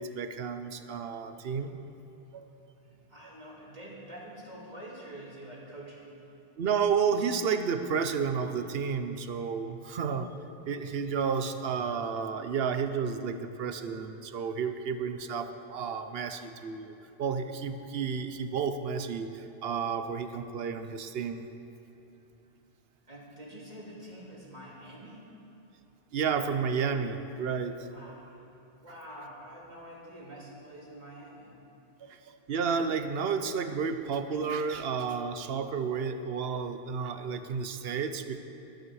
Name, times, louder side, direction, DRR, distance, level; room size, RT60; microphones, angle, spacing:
voice 1, 0.0-1.8 2.3-2.5 6.6-10.3 10.7-21.5 26.1-27.9 32.0-38.4, right 6 dB, 75° right, 9 dB, 1.0 m, -31 dB
voice 2, 2.8-6.2 23.1-25.3 27.9-28.4 28.8-31.5, right 1 dB, 45° right, -4 dB, 2.6 m, -46 dB
20.5 x 9.1 x 4.8 m, 2.9 s
omnidirectional pair, 1.0 m